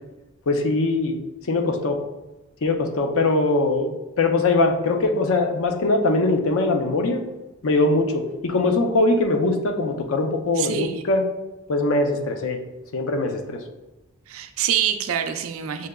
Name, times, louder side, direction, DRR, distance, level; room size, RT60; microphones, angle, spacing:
voice 1, 0.5-1.2 1.5-2.0 2.6-7.2 7.6-11.2 11.7-12.6 12.9-13.6, left 2 dB, 75° left, 5 dB, 0.5 m, -21 dB
voice 2, 10.6-11.0 14.3-15.9, right 9 dB, 75° right, 8 dB, 0.4 m, -25 dB
6.2 x 2.8 x 2.2 m, 1.1 s
head